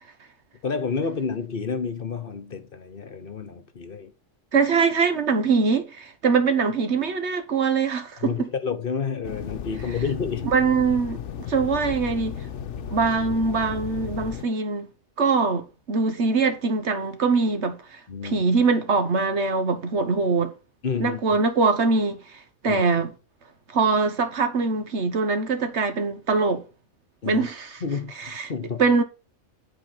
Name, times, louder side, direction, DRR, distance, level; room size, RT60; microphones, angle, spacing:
voice 1, 0.6-4.1 8.2-10.5 18.1-18.4 20.8-21.4 22.7-22.8 27.2-27.5 27.8-28.8, left 5 dB, 50° left, 1.2 m, -30 dB
voice 2, 4.5-8.5 10.4-12.4 12.9-14.9 15.2-20.5 21.0-23.1 23.7-26.6 27.2-27.7 28.2-28.5 28.8-29.0, right 4 dB, 65° right, 1.5 m, -23 dB
sound 1, 9.2-14.4, left 8 dB, 75° left, 1.1 m, -35 dB
11.0 x 4.8 x 6.0 m
omnidirectional pair, 1.3 m